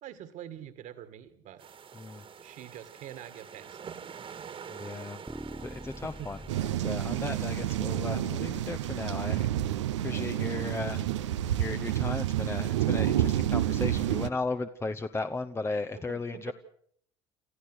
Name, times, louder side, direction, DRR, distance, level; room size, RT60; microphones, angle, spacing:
voice 1, 0.0-1.6 2.4-4.0 4.3-4.7 5.6-6.3 16.1-16.5, right 11 dB, 55° right, 12 dB, 2.1 m, -46 dB
sound 1, 1.6-6.7, right 7 dB, 35° right, 1.8 m, -46 dB
voice 2, 4.7-5.2 5.6-6.4 6.8-9.5 10.0-11.1 11.5-16.5, left 3 dB, 15° left, 9 dB, 0.9 m, -35 dB
Bass guitar, 5.3-11.5, equal, 5° right, 1.6 m, -46 dB
sound 2, 6.5-14.3, right 12 dB, 90° right, 0.8 m, -29 dB
28.5 x 14.5 x 6.4 m, 0.64 s
hypercardioid pair, 80°, 15 cm